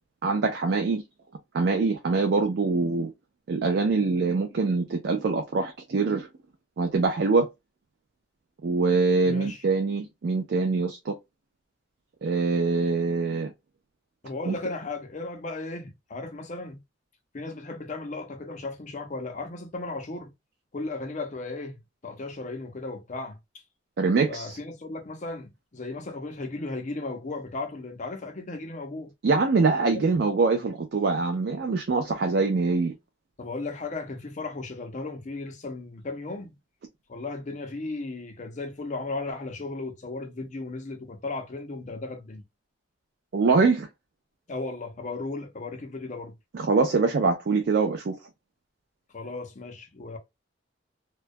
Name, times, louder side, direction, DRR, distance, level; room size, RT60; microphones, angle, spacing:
voice 1, 0.2-1.0 1.5-3.1 3.5-6.3 6.8-7.5 8.6-11.1 12.2-13.5 14.5-14.6 24.0-24.6 29.2-32.9 43.3-43.9 46.5-48.2, right 4 dB, 60° right, 0.4 m, -24 dB
voice 2, 9.2-9.6 14.2-16.8 17.3-20.3 20.7-21.8 22.0-23.4 24.3-29.1 29.9-30.1 33.4-36.5 37.1-42.4 44.5-46.3 49.1-50.2, left 3 dB, 40° left, 0.6 m, -35 dB
2.2 x 2.2 x 2.5 m
head